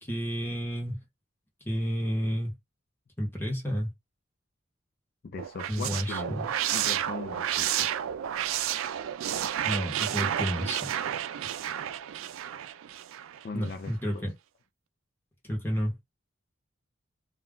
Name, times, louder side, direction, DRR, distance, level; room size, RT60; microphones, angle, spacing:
voice 1, 0.0-1.0 1.7-2.5 3.2-3.9 5.7-6.5 9.6-10.9 13.5-14.3 15.5-16.0, equal, 10° left, 0.9 m, -31 dB
voice 2, 5.2-6.3 6.7-7.9 13.4-14.2, left 4 dB, 50° left, 0.4 m, -39 dB
sound 1, 5.4-13.4, right 10 dB, 85° right, 0.3 m, -31 dB
2.3 x 2.2 x 3.6 m
head